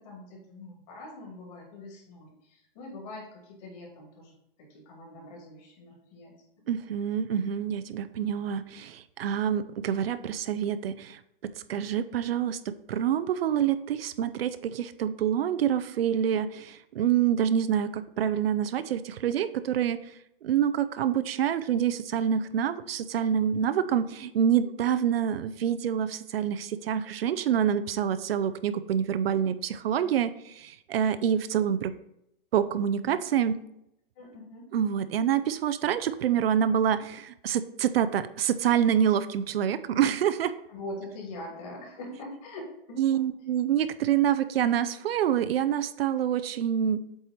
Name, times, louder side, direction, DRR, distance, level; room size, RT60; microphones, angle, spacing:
voice 1, 0.0-4.3 4.6-6.3 34.2-34.7 40.7-43.2, left 1 dB, 40° left, -1 dB, 2.5 m, -43 dB
voice 2, 6.7-20.0 20.4-31.9 32.5-33.6 34.7-40.5 43.0-47.0, right 9 dB, 80° right, 13 dB, 0.6 m, -27 dB
7.8 x 3.4 x 4.3 m, 0.80 s
hypercardioid pair, 145°, 29 cm